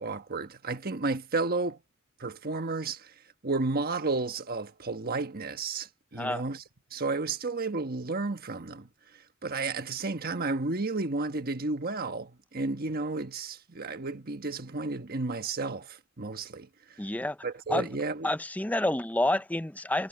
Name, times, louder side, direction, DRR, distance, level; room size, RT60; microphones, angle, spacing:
voice 1, 0.0-1.8 2.2-3.1 3.4-6.6 6.9-8.9 9.4-16.7 17.4-18.3, right 3 dB, 45° right, 1.4 m, -32 dB
voice 2, 17.0-17.4 17.7-17.9 18.2-20.1, left 1 dB, 10° left, 0.6 m, -28 dB
head